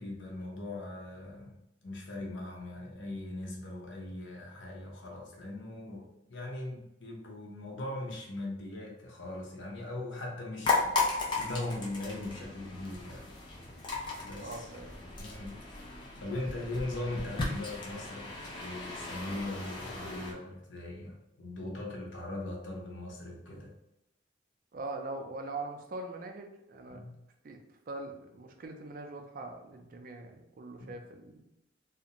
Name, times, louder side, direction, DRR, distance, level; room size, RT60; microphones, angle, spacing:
voice 1, 0.0-13.3 14.2-14.7 14.9-15.6 16.2-23.7 26.9-27.2 30.8-30.9, left 2 dB, 85° left, -1 dB, 0.7 m, -40 dB
sound 1, 10.6-20.3, left 3 dB, 25° left, 0.5 m, -35 dB
voice 2, 14.4-14.9 24.7-27.0 27.4-31.5, right 2 dB, 50° right, 3 dB, 0.4 m, -42 dB
2.5 x 2.1 x 2.8 m, 0.87 s
head